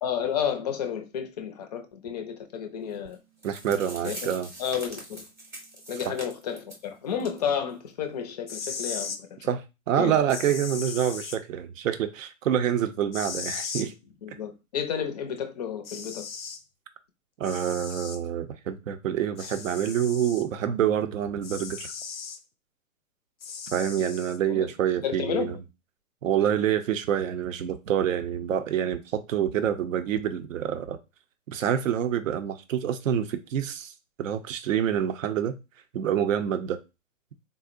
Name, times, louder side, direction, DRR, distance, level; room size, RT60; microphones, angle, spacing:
voice 1, 0.0-3.2 4.0-4.3 4.6-5.2 5.9-9.5 10.0-10.2 14.2-16.3 24.5-24.6 25.0-25.6 26.3-26.4, left 8 dB, 35° left, 0.4 m, -31 dB
sound 1, 3.1-3.2 3.4-6.8 7.2-7.4 7.7-7.8 8.3-8.4, right 1 dB, 5° right, 0.7 m, -42 dB
voice 2, 3.4-4.5 6.1-6.2 9.5-13.9 17.4-21.9 23.7-25.6 26.2-31.0 31.5-33.9 34.2-35.6 35.9-36.8, right 9 dB, 75° right, 0.5 m, -27 dB
sound 2, 8.3-9.2 10.3-11.4 13.1-13.9 15.4-15.5 15.8-16.6 17.4-18.2 19.4-20.5 21.4-22.4 23.4-24.4, left 6 dB, 90° left, 0.5 m, -37 dB
3.7 x 2.0 x 2.4 m
hypercardioid pair, 125°, 40 cm